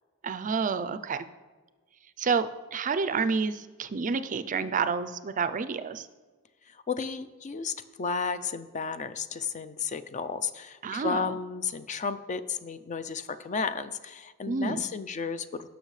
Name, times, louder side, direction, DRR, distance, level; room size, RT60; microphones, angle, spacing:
voice 1, 0.2-1.3 2.2-6.1 10.8-11.4 14.5-14.8, right 5 dB, 35° right, 12 dB, 0.4 m, -29 dB
voice 2, 6.7-15.7, left 5 dB, 35° left, 12 dB, 0.4 m, -33 dB
18.0 x 6.1 x 3.2 m, 1.4 s
head